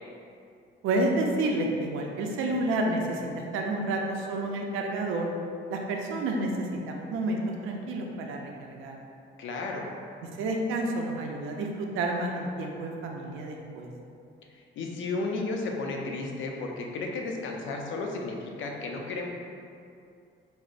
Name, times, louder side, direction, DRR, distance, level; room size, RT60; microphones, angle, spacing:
voice 1, 0.8-5.3 5.7-8.4 8.7-9.0 10.4-13.9, right 2 dB, 90° right, 1 dB, 0.4 m, -30 dB
voice 2, 9.4-9.9 14.5-19.3, left 3 dB, 75° left, 1 dB, 0.5 m, -33 dB
5.0 x 2.0 x 2.4 m, 2.5 s
cardioid pair, 90°, 20 cm